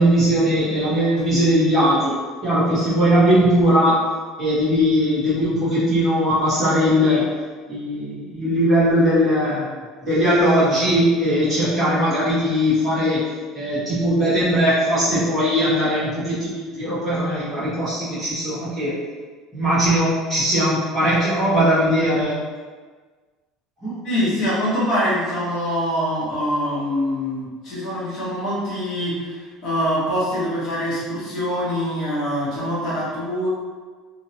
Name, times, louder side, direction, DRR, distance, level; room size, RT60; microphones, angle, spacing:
voice 1, 0.0-2.2 2.4-4.1 4.4-7.3 7.7-9.8 10.0-13.2 13.5-18.9 19.5-22.4 23.8-24.0, equal, 5° left, -16 dB, 1.3 m, -19 dB
voice 2, 24.0-33.5, equal, 50° left, -9 dB, 1.2 m, -24 dB
2.9 x 2.8 x 2.8 m, 1.5 s
cardioid pair, 155°, 0 cm